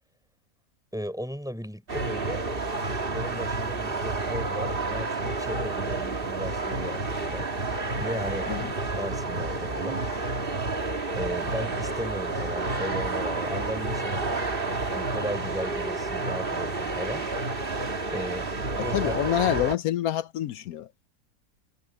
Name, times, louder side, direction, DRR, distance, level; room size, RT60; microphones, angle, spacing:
voice 1, 0.9-2.4 3.0-7.5 8.0-8.7 8.9-10.0 11.2-14.4 14.9-17.3 18.1-19.1, equal, ahead, 5.3 m, -36 dB
sound 1, 1.9-19.8, right 3 dB, 40° right, 2.0 m, -30 dB
voice 2, 18.9-20.9, left 12 dB, 80° left, 1.1 m, -27 dB
omnidirectional pair, 1.6 m